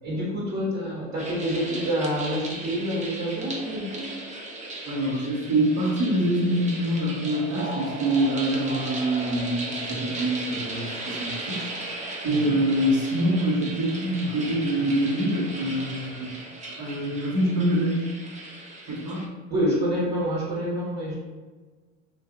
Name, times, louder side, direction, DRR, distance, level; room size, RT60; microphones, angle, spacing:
voice 1, 0.0-4.1 12.2-12.6 19.5-21.1, equal, 45° right, -5 dB, 1.2 m, -27 dB
sound 1, 1.2-19.3, right 2 dB, 20° right, 0.6 m, -36 dB
voice 2, 4.9-12.0 12.2-16.3 16.8-18.1 18.9-19.3, right 1 dB, 65° right, -5 dB, 1.2 m, -25 dB
2.7 x 2.5 x 3.6 m, 1.4 s
hypercardioid pair, 80°, 38 cm